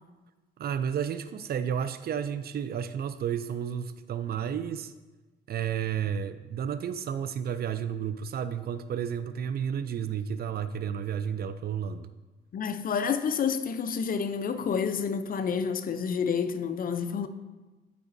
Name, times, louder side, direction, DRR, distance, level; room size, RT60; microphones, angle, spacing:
voice 1, 0.6-4.9 5.5-12.1, right 8 dB, 50° right, 0.4 m, -32 dB
voice 2, 12.5-17.3, left 6 dB, 45° left, 0.5 m, -29 dB
12.0 x 4.8 x 2.6 m
cardioid pair, 90°, 20 cm